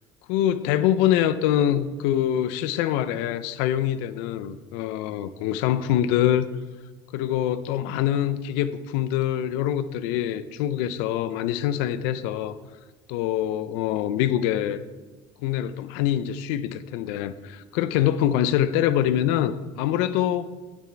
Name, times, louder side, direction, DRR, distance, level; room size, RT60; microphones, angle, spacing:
voice 1, 0.3-6.5 7.1-12.5 13.1-14.8 15.4-20.5, left 11 dB, 75° left, 0.6 m, -24 dB
9.0 x 7.5 x 4.6 m
cardioid pair, 150°, 13 cm